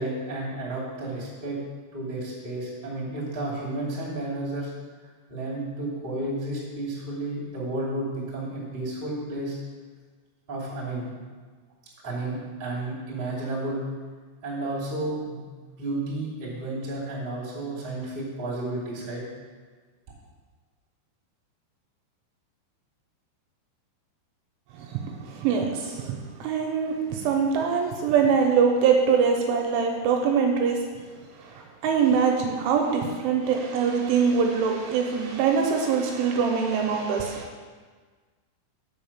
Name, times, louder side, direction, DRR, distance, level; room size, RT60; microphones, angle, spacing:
voice 1, 0.0-1.6 1.9-4.7 5.3-9.6 10.5-11.1 12.0-13.9 14.4-15.4 15.8-19.2, right 2 dB, 60° right, -7 dB, 0.5 m, -32 dB
voice 2, 24.7-30.8 31.4-37.5, right 6 dB, 80° right, 2 dB, 3.0 m, -23 dB
7.1 x 5.7 x 7.2 m, 1.5 s
omnidirectional pair, 6.0 m